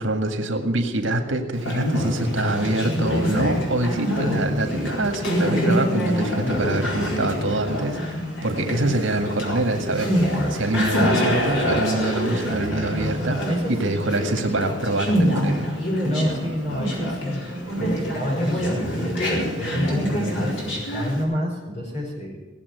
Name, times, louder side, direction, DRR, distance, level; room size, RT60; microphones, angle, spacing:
voice 1, 0.0-13.4 13.7-15.7, right 2 dB, 80° right, 5 dB, 1.8 m, -25 dB
Conversation, 1.5-21.2, equal, 75° left, 4.1 m, -25 dB
voice 2, 13.2-13.7 16.0-22.5, equal, 35° left, -1 dB, 5.0 m, -29 dB
17.5 x 7.5 x 9.3 m, 1.2 s
head